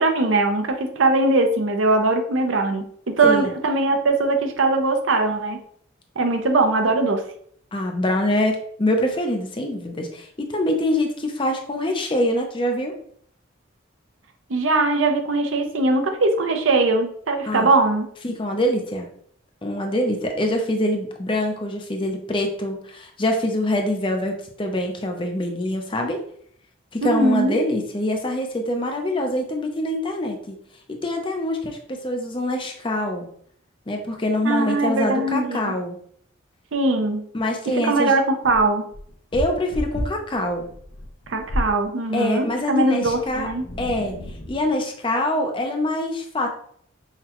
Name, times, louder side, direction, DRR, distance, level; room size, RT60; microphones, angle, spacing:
voice 1, 0.0-5.6 6.2-7.2 14.5-18.1 27.0-27.6 34.4-35.8 36.7-37.2 37.8-38.8 41.3-43.6, right 2 dB, 75° right, 5 dB, 0.6 m, -21 dB
voice 2, 7.7-12.9 17.5-17.7 18.2-19.1 19.6-26.2 26.9-30.6 30.9-33.3 33.9-36.0 37.3-38.1 39.3-40.7 42.1-43.5 43.8-44.2 44.5-46.5, left 1 dB, 25° left, 3 dB, 0.5 m, -24 dB
sound 1, 38.4-41.8 43.0-44.7, equal, 65° left, 0.8 m, -32 dB
5.7 x 2.2 x 2.9 m, 0.63 s
head